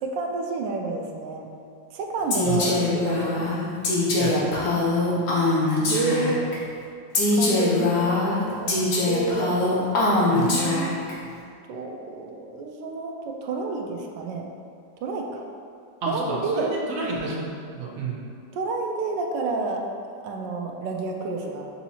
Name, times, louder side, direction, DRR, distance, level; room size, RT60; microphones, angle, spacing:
voice 1, 0.0-1.5 1.9-3.5 5.4-6.5 7.4-8.7 9.0-9.6 10.0-10.9 11.7-14.5 15.0-15.4 16.1-16.7 18.5-21.7, right 3 dB, 80° right, 1 dB, 1.2 m, -30 dB
Female speech woman speaking, 2.3-6.5 7.1-11.1, left 2 dB, 60° left, 1.2 m, -23 dB
voice 2, 2.4-2.8 4.1-4.4 10.3-10.6 13.4-13.8 16.0-17.5 17.8-18.2, right 3 dB, 60° right, -4 dB, 1.0 m, -31 dB
7.0 x 2.8 x 2.7 m, 2.3 s
omnidirectional pair, 2.0 m